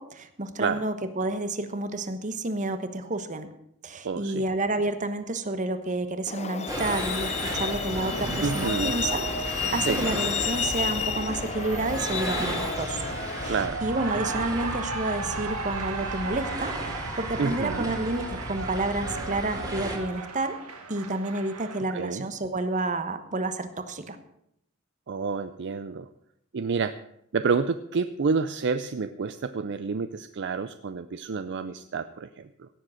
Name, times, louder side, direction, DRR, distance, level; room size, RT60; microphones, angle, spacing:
voice 1, 0.0-3.5 3.8-13.0 13.4-13.5 13.8-20.6 20.9-24.2, right 2 dB, 35° right, 10 dB, 1.1 m, -30 dB
voice 2, 4.0-4.4 8.4-9.0 9.8-10.0 13.5-13.8 17.4-17.9 21.9-22.2 25.1-26.1 26.5-27.0 27.3-32.7, right 5 dB, 55° right, 12 dB, 0.5 m, -29 dB
Truck, 6.3-13.7, left 7 dB, 30° left, 0.5 m, -32 dB
Cheering, 6.6-21.8, right 4 dB, 85° right, 1.9 m, -37 dB
sound 1, 6.7-20.0, right 1 dB, 15° right, 2.3 m, -35 dB
16.5 x 7.5 x 6.4 m, 0.75 s
head